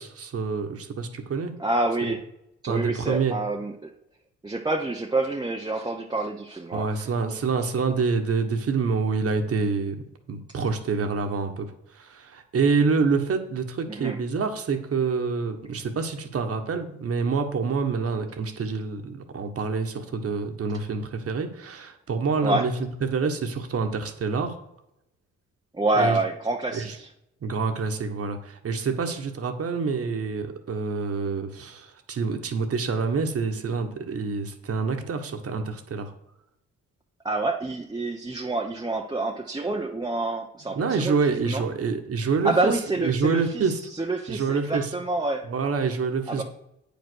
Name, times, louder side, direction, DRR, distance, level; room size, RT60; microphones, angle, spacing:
voice 1, 0.0-1.5 2.7-3.4 6.7-10.0 10.3-22.7 23.0-24.6 25.9-26.2 26.7-27.0 27.4-36.1 40.7-43.8 44.3-44.9 45.4-46.4, right 5 dB, 50° right, 6 dB, 1.4 m, -27 dB
voice 2, 1.6-2.2 2.6-3.7 4.4-6.9 13.9-14.2 22.4-22.7 25.7-27.1 37.2-41.6 42.4-43.7 44.0-45.5 46.3-46.4, right 2 dB, 15° right, 1 dB, 0.8 m, -27 dB
8.6 x 5.3 x 6.3 m, 0.81 s
cardioid pair, 90°, 30 cm